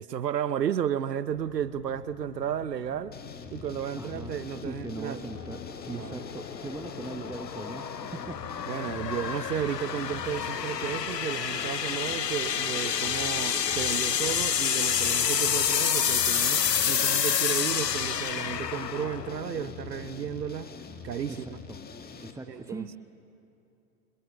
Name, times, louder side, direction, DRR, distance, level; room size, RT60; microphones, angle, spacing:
voice 1, 0.0-3.1 3.5-5.2 5.9-6.3 8.7-20.7 21.0-21.6 22.5-23.0, right 9 dB, 85° right, 0.8 m, -33 dB
sound 1, 1.4-20.5, left 8 dB, 90° left, 0.9 m, -30 dB
sound 2, 3.1-22.3, left 5 dB, 20° left, 2.1 m, -44 dB
voice 2, 4.0-4.3 4.6-8.6 21.3-21.8 22.2-23.0, right 3 dB, 5° right, 1.2 m, -40 dB
28.5 x 27.0 x 6.5 m
figure-of-eight pair, 95°, 48 cm